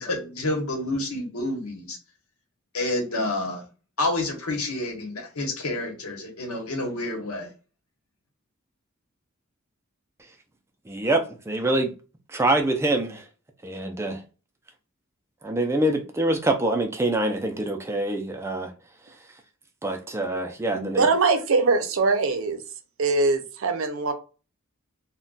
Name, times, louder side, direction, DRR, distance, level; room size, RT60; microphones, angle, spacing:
voice 1, 0.0-2.0 2.7-3.6 4.0-7.5, left 2 dB, 80° left, 1.0 m, -29 dB
voice 2, 10.9-11.9 12.3-13.2 13.6-14.2 15.4-18.7 19.8-21.1, right 2 dB, 10° right, 0.4 m, -25 dB
voice 3, 20.7-22.6 23.0-24.1, right 3 dB, 65° right, 0.5 m, -22 dB
2.3 x 2.2 x 3.8 m
head